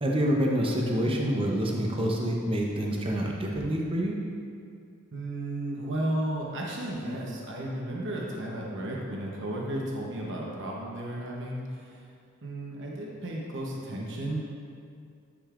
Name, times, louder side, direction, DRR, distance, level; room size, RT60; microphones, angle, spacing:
voice 1, 0.0-4.2, equal, 25° right, -1 dB, 0.7 m, -27 dB
voice 2, 5.1-12.0 12.4-14.4, right 1 dB, 55° right, -3 dB, 0.9 m, -33 dB
10.0 x 5.3 x 2.5 m, 2.4 s
head